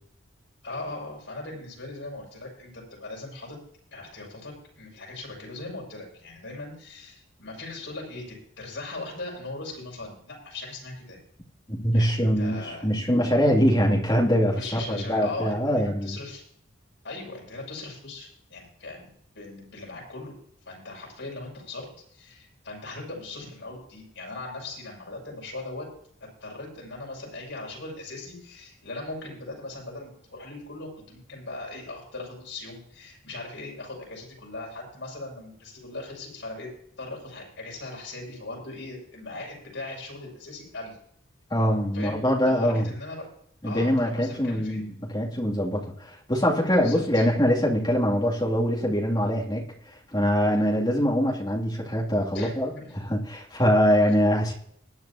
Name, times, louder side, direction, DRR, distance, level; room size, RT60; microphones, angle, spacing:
voice 1, 0.6-3.6 3.9-11.2 11.9-12.9 14.5-16.4 17.0-20.3 20.6-25.9 26.2-36.7 37.0-41.0 41.9-43.3 43.6-44.8 46.8-47.2 52.3-52.9, left 2 dB, 70° left, -3 dB, 6.7 m, -39 dB
voice 2, 11.7-16.2 41.5-42.8 43.6-49.7 50.1-54.5, equal, 20° left, -2 dB, 2.7 m, -23 dB
20.5 x 9.6 x 2.9 m, 0.65 s
head